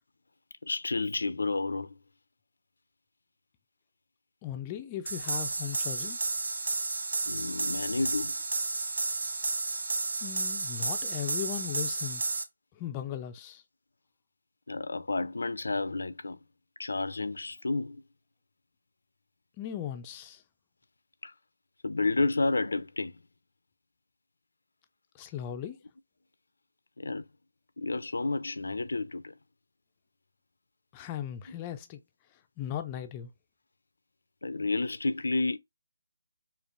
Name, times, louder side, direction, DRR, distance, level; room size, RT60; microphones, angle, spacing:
voice 1, 0.6-2.0 7.3-8.4 14.7-16.4 16.8-18.0 21.2-21.3 21.8-23.2 27.0-27.3 27.8-29.3 34.4-35.6, left 3 dB, 80° left, 0.4 m, -31 dB
voice 2, 4.4-6.2 10.2-12.2 12.7-13.6 19.6-20.4 25.1-25.8 30.9-32.0 32.6-33.3, left 10 dB, 15° left, 0.3 m, -37 dB
sound 1, 5.1-12.4, right 3 dB, 75° right, 0.7 m, -32 dB
5.0 x 2.5 x 2.5 m
hypercardioid pair, 170°, 0 cm